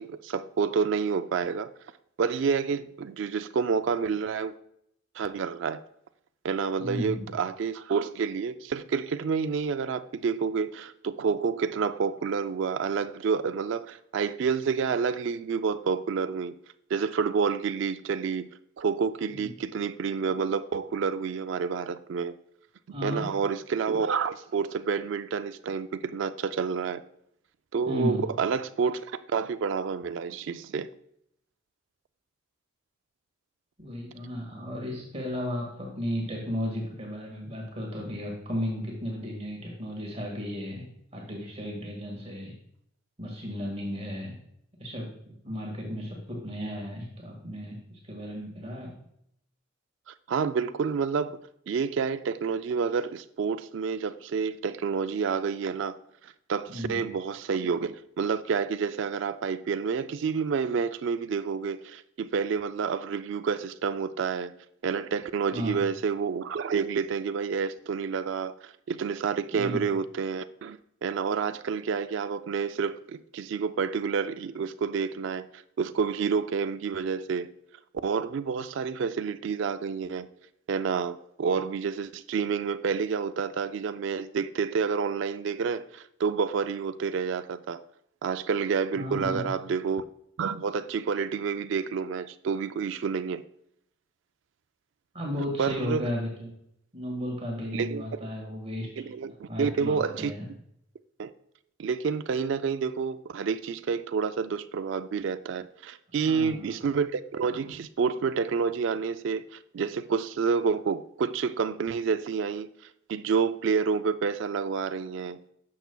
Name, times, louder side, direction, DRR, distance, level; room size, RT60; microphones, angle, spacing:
voice 1, 0.0-1.7 2.2-4.5 5.2-5.8 6.4-16.5 16.9-18.5 18.8-22.3 23.0-27.0 27.7-30.9 50.1-51.4 51.7-56.0 56.2-64.5 64.8-77.5 78.0-80.3 80.7-87.8 88.2-90.0 90.4-93.4 95.6-96.0 97.7-98.0 99.0-100.3 101.2-101.3 101.8-112.7 113.1-115.4, right 5 dB, 60° right, 0.3 m, -29 dB
voice 2, 6.8-7.3 19.3-19.5 22.9-23.3 27.9-28.2 33.8-40.8 41.1-42.5 43.2-44.3 44.8-48.9 56.7-57.0 65.5-65.8 69.5-69.8 88.9-89.5 95.1-96.5 96.9-98.9 99.5-100.5 106.2-106.8, equal, 30° right, 1.7 m, -34 dB
10.5 x 6.8 x 2.3 m
head